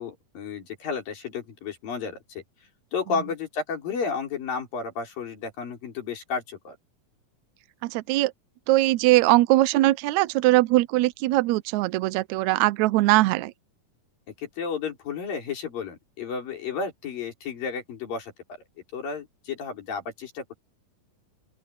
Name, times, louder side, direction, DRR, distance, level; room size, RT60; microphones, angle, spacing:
voice 1, 0.0-2.4 2.9-6.8 14.4-18.3 18.9-20.6, left 5 dB, 85° left, 6.1 m, -32 dB
voice 2, 7.8-8.3 8.7-13.5, right 18 dB, 80° right, 1.6 m, -21 dB
open air
omnidirectional pair, 3.9 m